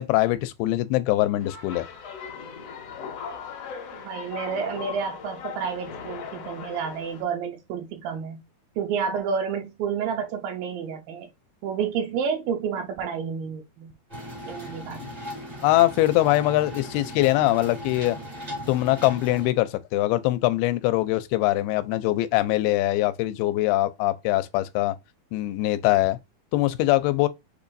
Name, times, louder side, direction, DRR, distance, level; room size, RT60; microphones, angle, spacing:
voice 1, 0.0-1.9 14.9-15.1 15.6-18.2 18.7-25.0 25.3-26.2 26.5-27.3, left 17 dB, 85° left, 2.5 m, -22 dB
sound 1, 1.4-7.2, left 6 dB, 70° left, 1.5 m, -38 dB
voice 2, 3.9-8.4 8.8-11.3 11.6-13.9 14.5-15.1, right 6 dB, 75° right, 2.3 m, -30 dB
sound 2, 14.1-19.5, equal, 55° right, 0.4 m, -38 dB
6.7 x 3.0 x 2.6 m
omnidirectional pair, 4.4 m